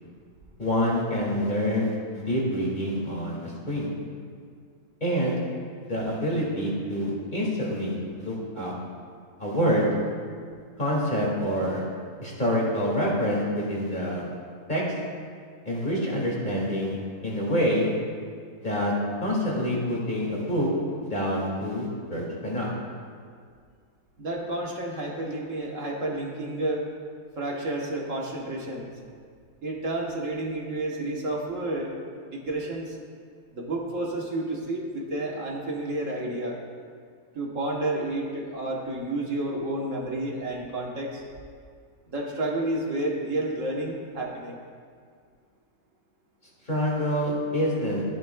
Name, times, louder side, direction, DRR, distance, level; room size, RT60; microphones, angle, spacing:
voice 1, 0.6-3.9 5.0-5.4 5.9-8.7 9.4-9.9 10.8-11.8 12.2-14.3 14.7-14.8 15.6-17.9 18.6-18.9 19.2-20.7 21.0-22.7 46.7-48.0, equal, 30° left, -4 dB, 2.2 m, -27 dB
voice 2, 24.2-26.8 27.4-28.9 29.6-31.9 32.3-33.0 33.5-36.6 37.3-41.2 42.1-44.6, right 1 dB, 55° right, -2 dB, 1.5 m, -30 dB
14.0 x 11.0 x 2.3 m, 2.1 s
omnidirectional pair, 1.6 m